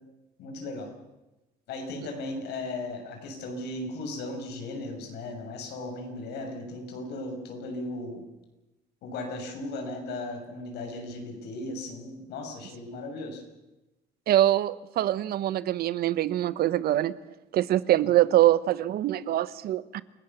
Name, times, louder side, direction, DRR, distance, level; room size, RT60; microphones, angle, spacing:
voice 1, 0.4-0.9 1.7-8.2 9.0-13.4, left 2 dB, 80° left, 4 dB, 6.6 m, -36 dB
voice 2, 14.3-17.1 17.5-20.0, right 13 dB, 65° right, 16 dB, 1.0 m, -24 dB
28.5 x 18.0 x 7.3 m, 1.0 s
cardioid pair, 110°, 17 cm